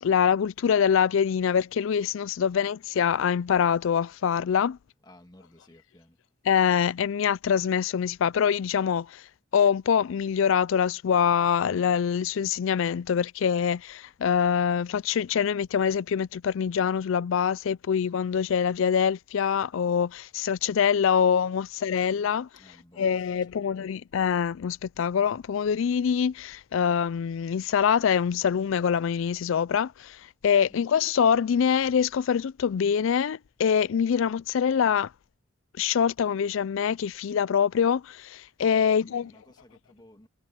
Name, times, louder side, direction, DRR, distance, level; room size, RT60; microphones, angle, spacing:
voice 1, 0.0-4.8 6.5-9.3 9.5-22.5 23.0-35.1 35.8-39.3, left 7 dB, 65° left, 0.3 m, -24 dB
voice 2, 5.0-6.2 22.6-23.7 30.6-30.9 38.8-40.3, left 1 dB, 20° left, 2.0 m, -55 dB
head